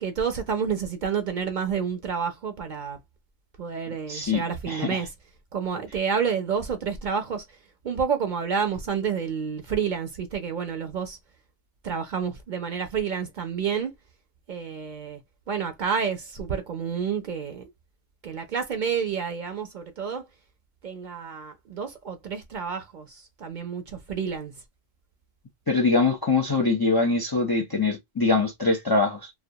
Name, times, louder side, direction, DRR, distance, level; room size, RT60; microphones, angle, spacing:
voice 1, 0.0-3.0 3.6-5.1 5.5-7.4 7.8-11.2 11.8-13.9 14.5-15.2 15.5-17.6 18.2-20.2 20.8-24.5, right 6 dB, 60° right, 0.6 m, -29 dB
voice 2, 4.1-5.0 25.7-29.3, left 3 dB, 35° left, 0.4 m, -23 dB
2.2 x 2.1 x 2.7 m
omnidirectional pair, 1.1 m